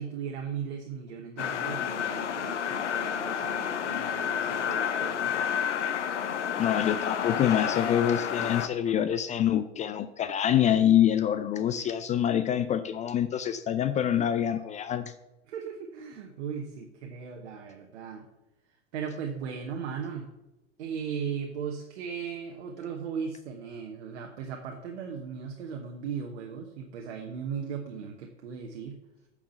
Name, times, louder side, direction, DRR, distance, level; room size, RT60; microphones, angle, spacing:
voice 1, 0.0-5.5 15.5-18.3 18.9-20.3 20.8-29.0, right 7 dB, 65° right, 2 dB, 1.2 m, -37 dB
sound 1, 1.4-8.7, left 8 dB, 80° left, 0.8 m, -30 dB
voice 2, 6.6-15.1, left 10 dB, 20° left, 12 dB, 0.4 m, -26 dB
8.9 x 4.9 x 6.7 m, 0.95 s
figure-of-eight pair, 85°, 35 cm